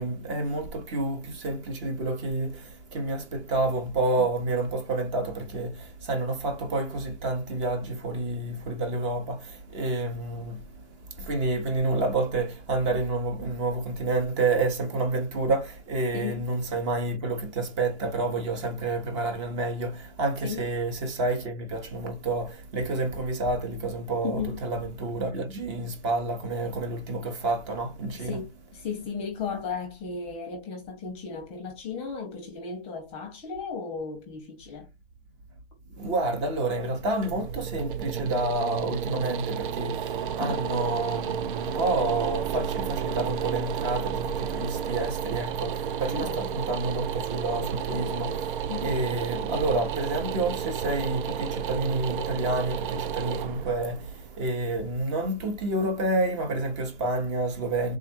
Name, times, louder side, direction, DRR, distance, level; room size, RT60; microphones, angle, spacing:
voice 1, 0.0-28.4 35.9-58.0, right 2 dB, 30° right, 1.0 m, -29 dB
voice 2, 24.2-24.6 28.1-34.9 40.4-40.6 46.1-46.5 48.7-49.0, left 6 dB, 20° left, 0.8 m, -35 dB
sound 1, 36.8-55.8, right 8 dB, 50° right, 0.5 m, -32 dB
3.6 x 2.4 x 4.4 m
hypercardioid pair, 150°, 32 cm